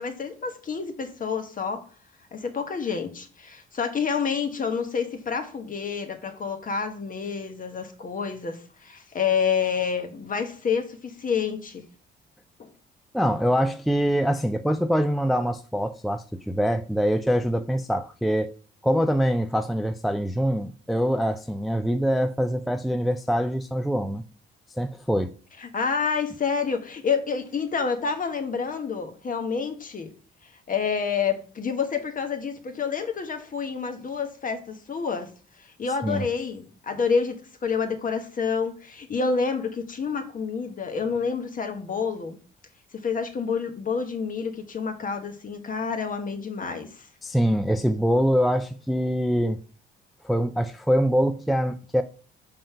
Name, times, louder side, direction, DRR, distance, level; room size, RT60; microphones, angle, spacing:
voice 1, 0.0-1.8 2.3-11.8 12.6-12.7 25.6-30.1 30.7-35.3 35.6-42.4 43.0-47.1, left 5 dB, 45° left, 1.3 m, -28 dB
voice 2, 13.1-18.5 18.8-24.2 24.8-25.4 36.0-36.2 47.2-49.6 50.2-52.0, equal, ahead, 0.4 m, -24 dB
5.4 x 3.7 x 5.6 m
cardioid pair, 90°, 20 cm